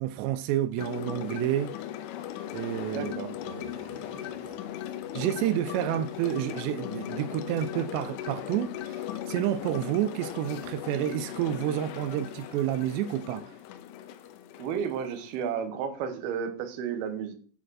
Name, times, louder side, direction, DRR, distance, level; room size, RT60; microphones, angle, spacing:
voice 1, 0.0-1.8 2.5-4.6 5.1-13.6, right 12 dB, 90° right, 2.5 m, -30 dB
sound 1, 0.8-15.5, left 11 dB, 90° left, 3.1 m, -38 dB
voice 2, 2.9-3.3 14.6-17.3, right 7 dB, 70° right, 2.5 m, -32 dB
8.7 x 5.0 x 6.2 m
omnidirectional pair, 5.6 m